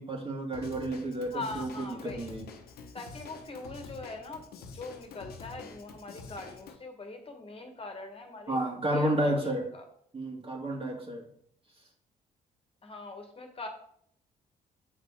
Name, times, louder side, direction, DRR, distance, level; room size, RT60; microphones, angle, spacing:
voice 1, 0.0-2.5 8.5-9.7 10.1-11.3, right 1 dB, 35° right, 1 dB, 2.2 m, -31 dB
Drum kit / Drum, 0.5-6.8, left 4 dB, 75° left, 1.0 m, -47 dB
voice 2, 1.3-2.3 2.9-8.6 8.9-9.4 9.7-9.8 12.8-13.7, left 3 dB, 35° left, 4 dB, 1.5 m, -42 dB
7.8 x 4.2 x 4.9 m, 0.65 s
supercardioid pair, 65°, 16 cm